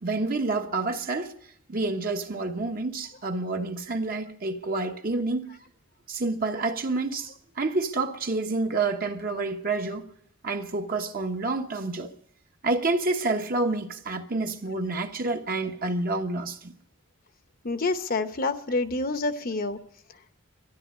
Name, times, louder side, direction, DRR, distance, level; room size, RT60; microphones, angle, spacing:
voice 1, 0.0-1.3 1.7-5.5 6.1-10.1 10.4-12.1 12.6-16.7, right 3 dB, 45° right, 1.2 m, -28 dB
voice 2, 17.6-19.8, left 3 dB, 45° left, 0.9 m, -27 dB
13.0 x 11.0 x 9.6 m
head